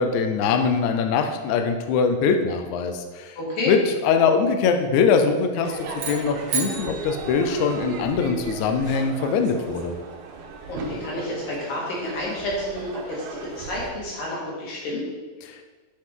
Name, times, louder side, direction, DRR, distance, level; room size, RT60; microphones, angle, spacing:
voice 1, 0.0-3.3 3.7-9.9, left 5 dB, 90° left, 5 dB, 1.6 m, -22 dB
voice 2, 3.4-3.7 10.7-15.0, left 1 dB, 65° left, -5 dB, 4.2 m, -30 dB
Crowd / Fireworks, 5.6-13.9, right 4 dB, 80° right, 2.8 m, -36 dB
sound 1, 5.9-8.3, right 6 dB, 65° right, 2.5 m, -33 dB
8.8 x 7.9 x 3.8 m, 1.3 s
omnidirectional pair, 4.3 m